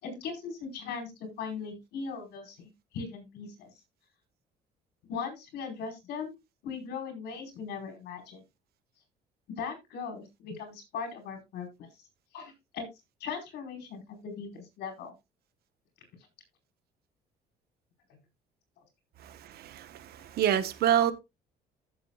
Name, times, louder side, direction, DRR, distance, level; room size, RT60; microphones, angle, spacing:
voice 1, 0.0-2.6 2.9-3.7 5.1-6.4 6.6-8.4 9.5-11.9 12.3-12.9 13.2-15.1 18.1-18.2 20.2-20.3, left 5 dB, 75° left, 4.9 m, -39 dB
voice 2, 19.2-21.1, right 10 dB, 65° right, 1.2 m, -27 dB
15.0 x 7.5 x 2.4 m
cardioid pair, 110°, 17 cm